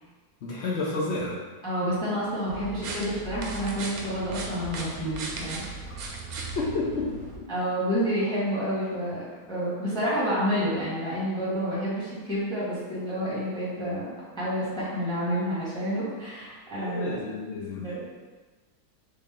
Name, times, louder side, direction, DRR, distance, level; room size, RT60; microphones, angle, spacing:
voice 1, 0.4-1.4 5.8-5.9 6.6-7.0 16.8-17.9, left 3 dB, 70° left, -4 dB, 0.6 m, -30 dB
voice 2, 1.6-5.7 7.5-9.2 9.5-17.2 17.8-18.2, equal, 5° left, -9 dB, 1.1 m, -29 dB
sound 1, 2.5-7.4, right 3 dB, 70° right, 1.0 m, -37 dB
3.3 x 2.6 x 3.6 m, 1.3 s
omnidirectional pair, 1.7 m